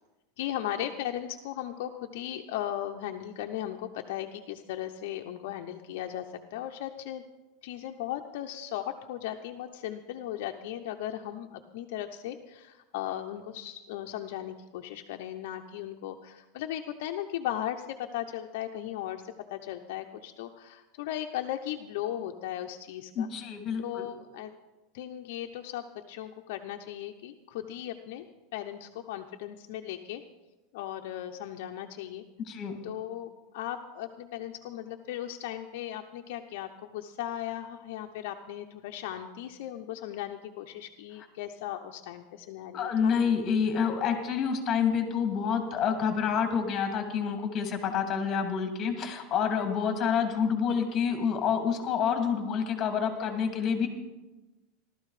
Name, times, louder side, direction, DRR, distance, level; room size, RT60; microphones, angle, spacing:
voice 1, 0.4-7.2 7.6-17.9 18.1-23.3 23.8-24.5 24.9-28.2 28.5-30.2 30.7-32.2 32.8-43.2, left 12 dB, 65° left, 4 dB, 0.8 m, -37 dB
voice 2, 23.1-24.1 32.4-32.8 42.7-53.9, left 7 dB, 30° left, 5 dB, 2.6 m, -28 dB
16.0 x 13.0 x 5.0 m, 1.1 s
supercardioid pair, 150°, 0 cm